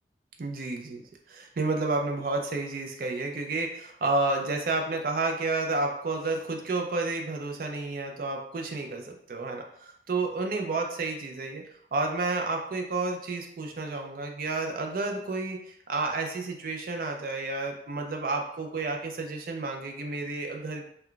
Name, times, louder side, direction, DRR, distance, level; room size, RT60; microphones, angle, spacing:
voice 1, 0.4-1.0 1.3-11.6 11.9-20.9, right 3 dB, 50° right, 3 dB, 0.4 m, -31 dB
2.2 x 2.2 x 3.7 m, 0.71 s
head